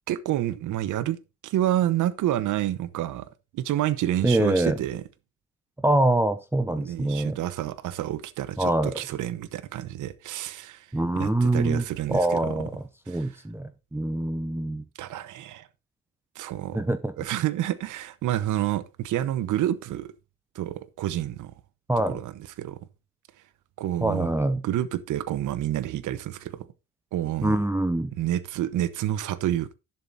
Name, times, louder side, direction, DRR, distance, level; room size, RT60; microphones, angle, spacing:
voice 1, 0.1-1.2 1.4-3.3 3.5-5.0 6.7-10.9 11.2-12.5 13.1-13.3 15.0-15.7 16.3-16.8 17.2-20.1 20.5-21.5 22.1-22.8 23.8-24.3 24.6-26.7 27.1-27.6 28.2-29.7, right 12 dB, 80° right, 1.0 m, -29 dB
voice 2, 4.2-4.7 5.8-7.4 8.6-9.0 10.9-14.8 16.7-17.1 21.9-22.2 24.0-24.6 27.4-28.1, right 1 dB, 10° right, 0.7 m, -25 dB
11.0 x 7.6 x 4.0 m
cardioid pair, 90°, 30 cm